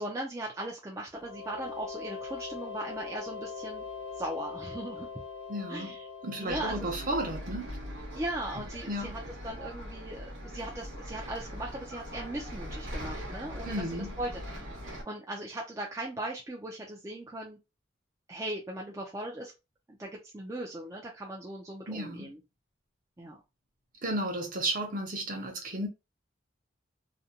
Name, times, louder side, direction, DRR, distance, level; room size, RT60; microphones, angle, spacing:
voice 1, 0.0-3.8 4.2-5.1 5.7-6.1 6.4-6.9 8.1-13.7 14.2-14.7 15.1-17.6 18.3-19.5 19.9-22.4 23.2-23.4, right 1 dB, 15° right, 0.4 m, -38 dB
sound 1, 1.1-7.7, left 5 dB, 60° left, 0.6 m, -42 dB
voice 2, 5.5-5.9 6.2-7.7 8.6-9.1 13.6-14.2 21.9-22.3 24.0-25.9, right 1 dB, 45° right, 0.7 m, -33 dB
Bus, 6.5-15.0, equal, 70° right, 0.9 m, -41 dB
2.5 x 2.1 x 2.7 m
head